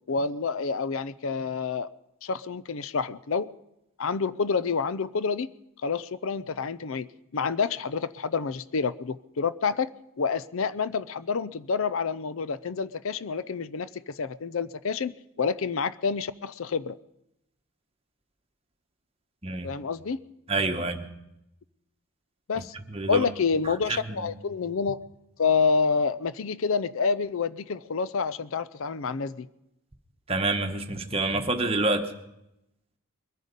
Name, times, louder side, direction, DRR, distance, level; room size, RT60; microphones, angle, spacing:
voice 1, 0.1-1.9 2.2-3.5 4.0-5.5 5.8-17.0 19.6-20.2 22.5-22.7 23.1-25.0 25.4-29.5, left 5 dB, 65° left, 17 dB, 0.5 m, -28 dB
voice 2, 20.5-21.0 22.9-23.2 23.9-24.3 30.3-32.0, right 2 dB, 25° right, 5 dB, 1.1 m, -27 dB
22.0 x 10.5 x 5.3 m, 0.85 s
head